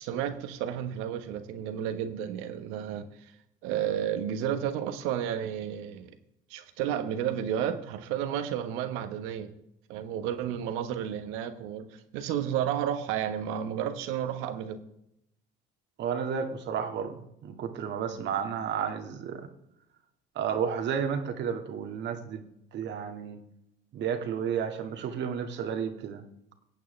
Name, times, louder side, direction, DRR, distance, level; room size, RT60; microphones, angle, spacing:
voice 1, 0.0-3.3 3.6-6.1 6.5-9.5 9.9-14.8, right 9 dB, 80° right, 9 dB, 1.4 m, -32 dB
voice 2, 16.0-17.1 17.4-19.5 20.4-22.4 22.7-23.4 23.9-26.2, right 7 dB, 60° right, 5 dB, 2.0 m, -32 dB
22.5 x 8.6 x 3.4 m, 0.79 s
supercardioid pair, 90°, 21 cm